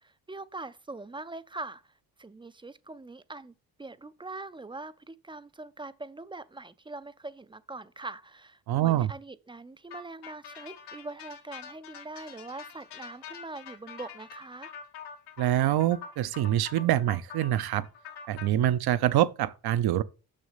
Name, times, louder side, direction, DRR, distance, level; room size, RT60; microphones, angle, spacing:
voice 1, 0.0-1.8 2.2-14.7, right 2 dB, 15° right, 0.4 m, -42 dB
voice 2, 8.7-9.1 15.4-17.9 18.3-20.0, right 12 dB, 70° right, 0.7 m, -25 dB
sound 1, 9.9-18.5, left 6 dB, 90° left, 1.5 m, -45 dB
6.4 x 6.4 x 5.6 m
cardioid pair, 105°, 39 cm